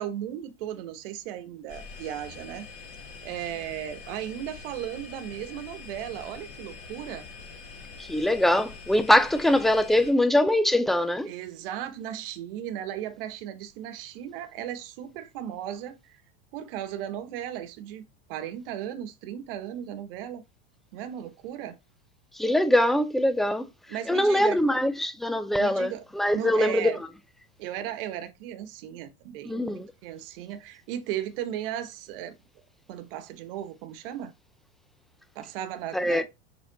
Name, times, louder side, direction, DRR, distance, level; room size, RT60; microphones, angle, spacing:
voice 1, 0.0-2.7 3.2-7.3 11.3-16.2 16.5-18.0 18.3-20.4 20.9-21.8 23.9-24.6 25.5-26.0 26.3-27.0 27.6-32.4 32.9-34.3 35.3-36.2, right 11 dB, 60° right, 1.2 m, -36 dB
sound 1, 1.7-10.1, left 5 dB, 40° left, 4.5 m, -44 dB
voice 2, 8.0-11.3 22.4-23.7 24.1-26.9 29.5-29.9 35.9-36.2, left 1 dB, ahead, 0.5 m, -23 dB
6.7 x 4.0 x 4.0 m
supercardioid pair, 120°, 31 cm